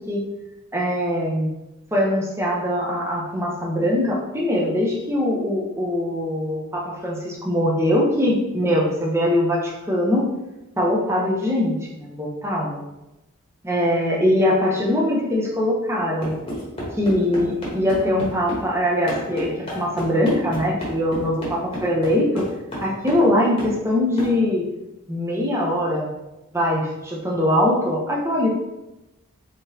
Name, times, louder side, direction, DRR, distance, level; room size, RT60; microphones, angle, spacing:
voice 1, 0.7-1.5 1.9-10.3 10.8-12.8 13.6-16.3 17.0-22.5 22.8-24.6 25.1-26.1 26.5-28.5, left 1 dB, 10° right, -3 dB, 0.6 m, -22 dB
sound 1, 16.2-18.7 19.1-23.3 23.6-23.8 24.2-24.4, equal, 25° left, 1.1 m, -31 dB
3.7 x 3.6 x 2.7 m, 0.97 s
head